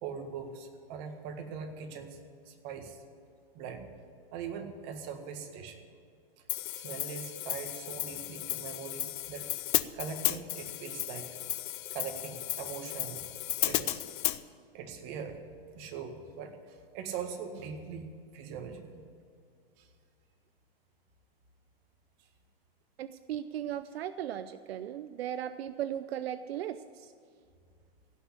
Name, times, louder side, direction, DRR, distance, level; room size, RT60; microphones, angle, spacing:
voice 1, 0.0-2.2 2.5-3.0 3.5-3.9 4.3-5.8 6.7-9.5 9.9-11.4 11.9-13.2 13.6-14.0 14.7-15.4 15.7-18.1 18.3-19.0 19.8-19.9, right 6 dB, 40° right, 5 dB, 1.8 m, -41 dB
Hi-hat, 6.5-14.4, left 15 dB, 55° left, 0.7 m, -34 dB
voice 2, 23.0-27.1, right 10 dB, 80° right, 12 dB, 0.6 m, -37 dB
16.5 x 6.5 x 10.0 m, 2.3 s
hypercardioid pair, 145°, 30 cm